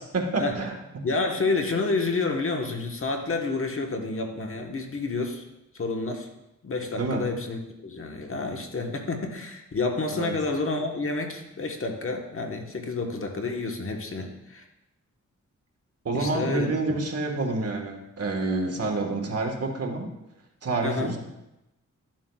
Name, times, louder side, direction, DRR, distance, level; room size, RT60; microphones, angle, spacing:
voice 1, 0.1-0.8 7.0-7.2 10.1-10.3 16.0-20.1 20.6-21.2, right 3 dB, 55° right, 2 dB, 1.5 m, -28 dB
voice 2, 1.0-5.4 5.7-6.3 6.6-14.6 16.1-16.7 20.8-21.1, left 3 dB, 45° left, 3 dB, 1.2 m, -29 dB
12.5 x 7.4 x 2.3 m, 0.92 s
cardioid pair, 75°, 30 cm